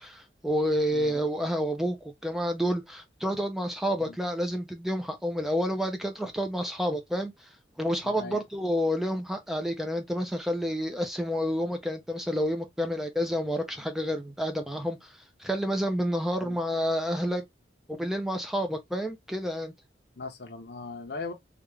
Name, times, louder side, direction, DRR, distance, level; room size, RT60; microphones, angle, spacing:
voice 1, 0.0-7.5 7.8-17.4 17.9-19.7, equal, ahead, 0.6 m, -29 dB
voice 2, 20.2-21.3, left 3 dB, 60° left, 0.7 m, -39 dB
3.4 x 2.4 x 3.1 m
head